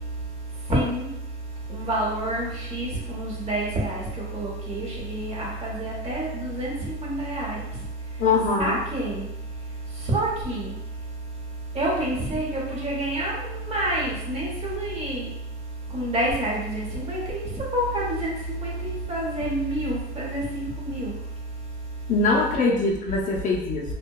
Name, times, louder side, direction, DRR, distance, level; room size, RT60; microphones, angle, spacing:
voice 1, 1.8-2.5 2.7-2.9 3.1-4.0 4.3-6.3 6.6-6.7 7.0-7.5 8.6-9.2 10.1-10.6 11.8-13.3 13.7-15.2 15.9-17.4 17.7-18.3 18.6-18.7 19.1-21.1, right 1 dB, 35° right, -4 dB, 0.8 m, -27 dB
voice 2, 8.2-8.8 22.1-23.9, left 3 dB, 45° left, -1 dB, 0.4 m, -22 dB
2.7 x 2.1 x 2.2 m, 0.83 s
cardioid pair, 155°, 18 cm